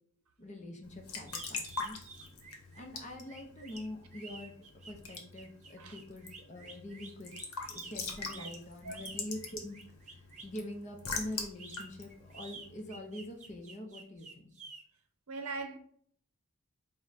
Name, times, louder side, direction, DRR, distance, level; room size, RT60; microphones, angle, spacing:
voice 1, 0.4-2.0 2.7-4.5 4.9-7.3 7.7-9.8 10.4-14.6, left 1 dB, 30° left, 0.6 m, -44 dB
Raindrop / Drip / Trickle dribble, 0.8-13.3, left 4 dB, 75° left, 0.9 m, -44 dB
sound 1, 1.3-10.6 11.4-14.8, right 4 dB, 35° right, 0.7 m, -50 dB
voice 2, 15.3-15.8, right 3 dB, 75° right, 0.6 m, -41 dB
4.6 x 2.1 x 4.0 m
head